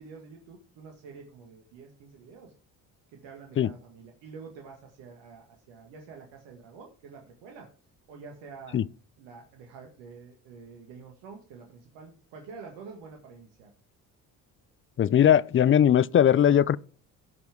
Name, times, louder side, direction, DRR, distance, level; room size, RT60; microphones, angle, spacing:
voice 1, 0.0-2.5 3.1-7.7 8.1-8.8 9.2-13.7, right 5 dB, 70° right, 2.0 m, -47 dB
voice 2, 15.0-16.8, left 9 dB, 30° left, 0.5 m, -20 dB
17.0 x 5.8 x 3.5 m
hypercardioid pair, 50°, 45 cm